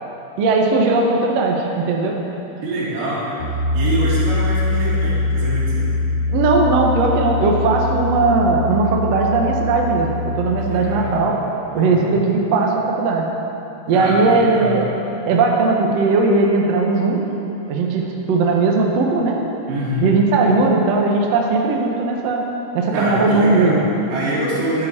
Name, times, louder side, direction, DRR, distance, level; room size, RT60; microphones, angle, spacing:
voice 1, 0.4-2.2 6.3-11.4 11.7-13.3 13.9-14.8 15.3-17.2 17.7-19.4 20.0-22.4 22.7-23.8, right 3 dB, 70° right, -1 dB, 1.5 m, -18 dB
voice 2, 2.6-3.4 3.7-5.9 10.6-11.3 11.7-12.1 13.9-14.8 19.7-20.1 22.9-24.9, right 1 dB, 55° right, -9 dB, 4.1 m, -25 dB
Piano, 3.4-11.1, left 3 dB, 75° left, 1.6 m, -22 dB
13.0 x 10.5 x 4.4 m, 3.0 s
omnidirectional pair, 4.9 m